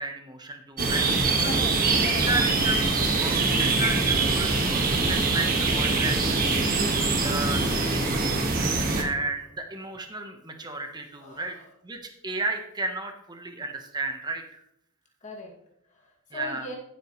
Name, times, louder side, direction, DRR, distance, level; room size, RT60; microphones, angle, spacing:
voice 1, 0.0-1.5 2.3-8.5 8.8-11.6 11.8-14.6 16.3-16.7, right 2 dB, 20° right, 5 dB, 1.2 m, -34 dB
sound 1, 0.8-9.0, right 3 dB, 40° right, 1.7 m, -23 dB
voice 2, 1.4-2.3 11.2-11.6 15.2-15.5 16.3-16.8, left 2 dB, 35° left, -2 dB, 2.4 m, -38 dB
14.5 x 8.4 x 3.2 m, 0.77 s
head